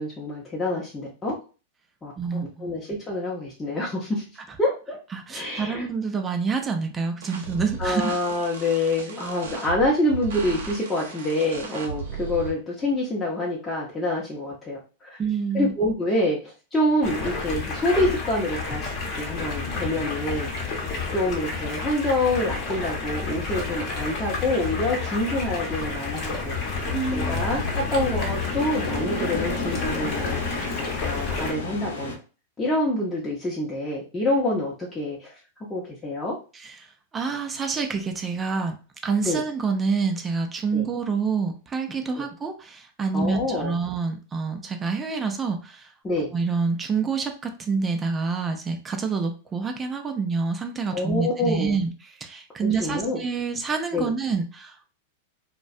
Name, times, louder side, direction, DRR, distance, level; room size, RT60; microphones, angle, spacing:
voice 1, 0.0-1.4 2.0-4.2 4.6-5.0 5.3-5.9 7.8-15.2 15.5-20.5 21.1-26.5 26.8-30.4 30.7-32.1 32.6-35.3 35.7-36.4 39.2-39.4 40.7-40.9 42.2-42.3 43.1-43.8 46.0-46.3 50.9-51.8 52.6-53.2 53.9-54.1, left 1 dB, 15° left, -5 dB, 0.6 m, -26 dB
voice 2, 2.2-2.7 5.1-8.2 15.2-15.7 26.8-27.5 36.5-36.8 37.1-38.8 39.0-45.9 46.3-51.9 52.2-54.9, right 5 dB, 20° right, 5 dB, 0.4 m, -27 dB
sound 1, 7.2-12.5, right 5 dB, 75° right, 0.7 m, -36 dB
Stream, 17.0-31.5, left 4 dB, 45° left, 0.8 m, -30 dB
sound 2, 22.3-32.1, left 3 dB, 85° left, 0.8 m, -34 dB
2.3 x 2.1 x 2.6 m, 0.35 s
hypercardioid pair, 110°, 0 cm